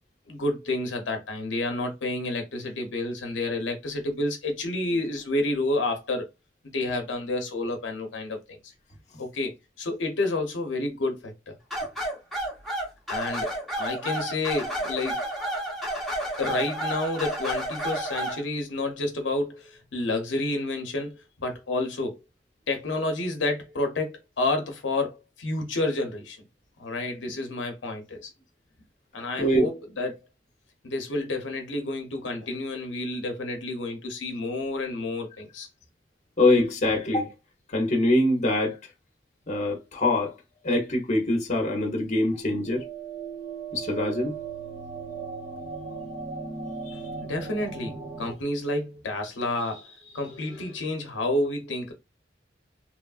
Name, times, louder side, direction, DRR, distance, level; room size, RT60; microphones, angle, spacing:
voice 1, 0.3-6.3 6.7-8.4 9.2-9.5 9.8-11.5 13.1-15.2 16.4-22.2 22.7-26.4 26.8-28.3 29.1-30.2 30.8-35.7 47.2-51.9, left 2 dB, 75° left, 0.7 m, -29 dB
sound 1, 11.7-18.4, right 1 dB, ahead, 0.9 m, -31 dB
voice 2, 36.4-37.3 37.7-38.8 39.5-40.4 40.6-42.8 43.7-44.3 46.8-47.0, left 1 dB, 40° left, 0.7 m, -24 dB
sound 2, 42.1-48.3, right 5 dB, 25° right, 0.5 m, -37 dB
3.0 x 2.3 x 2.3 m
head